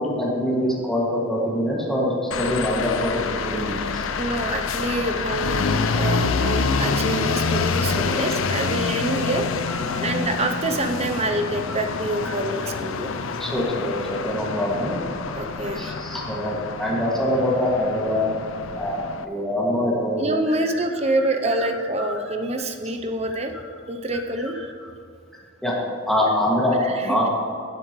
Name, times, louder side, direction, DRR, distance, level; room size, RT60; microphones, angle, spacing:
voice 1, 0.0-4.1 4.4-4.6 5.1-5.3 8.5-9.1 9.7-10.0 12.2-12.4 13.4-15.0 15.7-18.4 18.8-20.2 20.6-20.8 21.2-21.3 21.6-21.7 22.0-22.1 23.3-23.4 24.8-24.9 25.6-25.8 26.1-27.3, left 1 dB, ahead, -5 dB, 2.1 m, -25 dB
sound 1, 2.3-19.2, left 4 dB, 65° left, 0.5 m, -27 dB
voice 2, 4.2-9.4 10.0-13.1 15.3-16.0 20.2-23.5 23.9-24.7 26.8-27.2, right 1 dB, 30° right, 5 dB, 0.7 m, -26 dB
16.5 x 7.7 x 3.2 m, 2.3 s
head